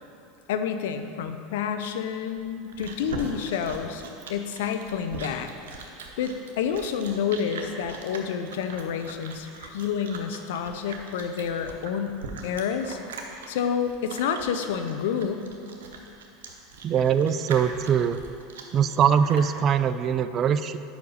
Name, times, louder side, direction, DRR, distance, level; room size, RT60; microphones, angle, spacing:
voice 1, 0.5-4.0 4.3-5.5 6.2-12.2 12.4-13.0 13.5-15.5, left 7 dB, 75° left, 8 dB, 0.5 m, -29 dB
Chewing mastication, 2.3-19.5, right 4 dB, 85° right, 0.8 m, -41 dB
voice 2, 16.8-18.2 18.7-20.9, right 8 dB, 40° right, 12 dB, 0.3 m, -22 dB
5.2 x 4.9 x 6.3 m, 2.6 s
hypercardioid pair, 100°, 0 cm